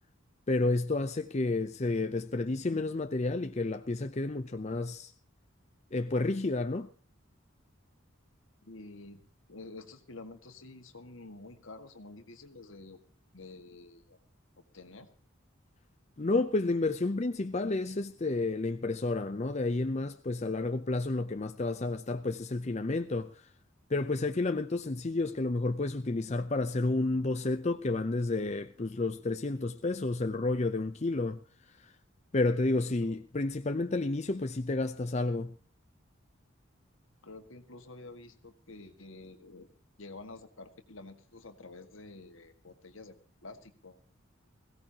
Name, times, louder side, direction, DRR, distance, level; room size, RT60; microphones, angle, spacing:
voice 1, 0.5-5.1 5.9-6.9 16.2-23.3 23.9-31.4 31.8-31.9 32.3-35.5, left 2 dB, 35° left, 0.6 m, -30 dB
voice 2, 8.6-9.2 9.5-13.0 13.3-14.2 14.7-15.1 33.0-33.2 37.2-39.7 40.0-43.2 43.4-44.0, left 2 dB, 75° left, 1.8 m, -49 dB
21.5 x 16.5 x 2.9 m
head